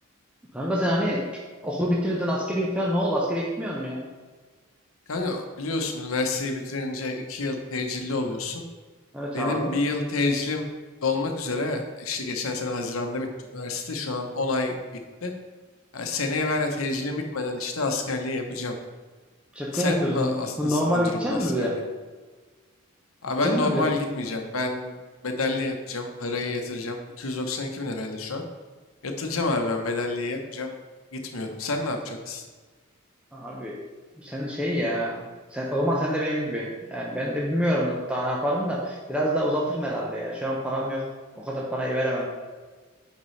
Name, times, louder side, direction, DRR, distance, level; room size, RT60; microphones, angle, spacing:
voice 1, 0.5-1.2 1.6-4.0 9.1-9.7 19.5-21.7 23.4-23.9 33.3-33.8 34.2-35.2 35.5-41.0 41.4-42.3, equal, 5° right, -4 dB, 0.7 m, -26 dB
voice 2, 5.1-8.6 9.3-10.7 11.0-13.3 13.5-14.8 15.2-15.3 15.9-18.8 19.7-21.8 23.2-24.9 25.2-28.4 29.0-30.7 31.1-32.4, left 3 dB, 85° left, 4 dB, 0.9 m, -28 dB
9.0 x 5.3 x 3.2 m, 1.4 s
head